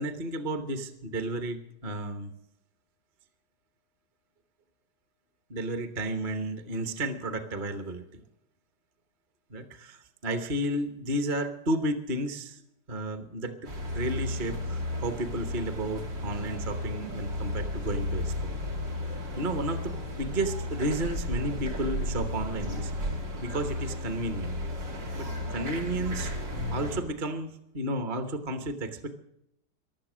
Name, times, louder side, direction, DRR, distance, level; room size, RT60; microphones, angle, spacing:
voice 1, 0.0-2.3 5.5-8.2 9.5-12.6 12.9-13.6 13.9-18.6 19.4-22.9 23.4-24.6 25.1-26.3 26.7-29.2, right 1 dB, 35° right, 8 dB, 1.0 m, -32 dB
sound 1, 13.6-27.0, left 1 dB, 85° right, 3.4 m, -33 dB
15.5 x 11.5 x 6.1 m, 0.78 s
omnidirectional pair, 1.9 m